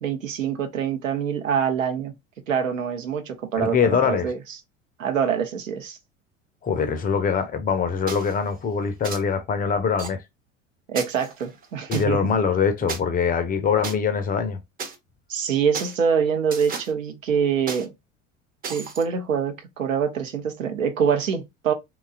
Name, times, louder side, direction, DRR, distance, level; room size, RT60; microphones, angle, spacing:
voice 1, 0.0-2.1 2.5-4.4 5.0-6.0 10.9-12.3 15.3-17.9 18.7-21.7, right 7 dB, 80° right, 0.7 m, -25 dB
voice 2, 3.6-4.3 6.6-10.2 11.9-14.6, left 6 dB, 25° left, 0.5 m, -23 dB
sound 1, 8.1-8.4 9.0-9.2 10.0-10.1 10.9-12.0 12.9-13.0 13.8-13.9 14.8-15.0 15.7-15.9 16.5-16.9 17.7-17.8 18.6-19.0, right 5 dB, 25° right, 0.6 m, -34 dB
2.8 x 2.2 x 2.3 m
figure-of-eight pair, 70°, 38 cm